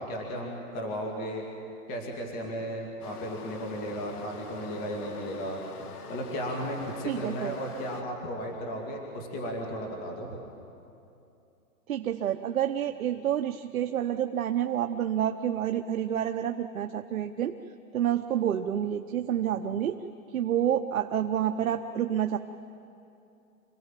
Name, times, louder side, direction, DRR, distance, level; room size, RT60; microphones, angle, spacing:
voice 1, 0.0-1.4 1.9-5.6 6.1-10.4, equal, 25° left, 1 dB, 2.4 m, -35 dB
Stream, 3.0-8.0, left 5 dB, 90° left, 1.9 m, -44 dB
voice 2, 7.0-7.6 11.9-17.6 17.9-20.0 20.3-22.4, right 10 dB, 65° right, 6 dB, 0.9 m, -28 dB
26.0 x 16.5 x 7.5 m, 2.7 s
hypercardioid pair, 170°, 44 cm